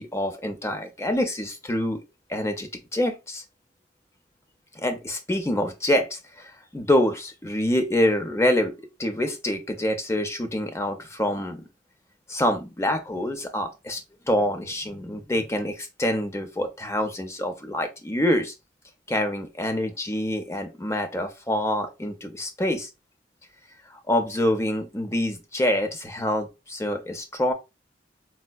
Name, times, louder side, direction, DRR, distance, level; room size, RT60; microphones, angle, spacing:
voice 1, 0.0-2.0 2.3-3.4 4.8-11.6 12.3-14.0 14.3-18.5 19.1-22.9 23.9-27.5, left 1 dB, 15° left, 0.4 m, -26 dB
4.3 x 2.1 x 2.2 m
head